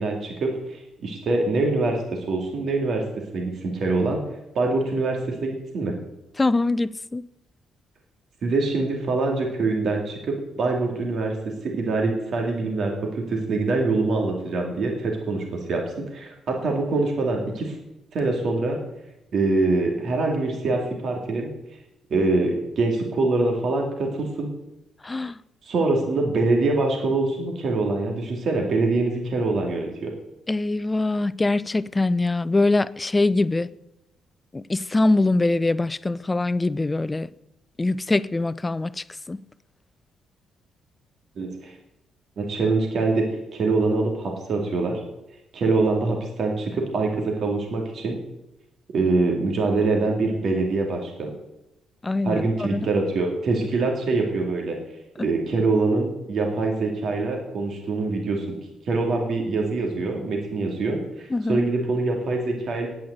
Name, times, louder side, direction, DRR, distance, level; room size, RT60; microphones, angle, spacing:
voice 1, 0.0-3.0 3.3-4.2 4.5-5.9 8.4-17.8 18.1-18.8 19.3-21.5 22.1-24.5 25.6-30.1 41.4-41.7 42.4-45.0 45.5-48.2 48.9-51.3 52.2-54.8 55.2-58.5 58.9-62.9, right 3 dB, 60° right, 2.5 m, -24 dB
voice 2, 6.4-7.3 25.0-25.4 30.5-33.7 34.5-37.3 37.8-39.4 52.0-52.9 55.2-55.3 61.3-61.7, left 2 dB, 20° left, 0.5 m, -23 dB
9.4 x 8.6 x 8.1 m
cardioid pair, 90°, 0 cm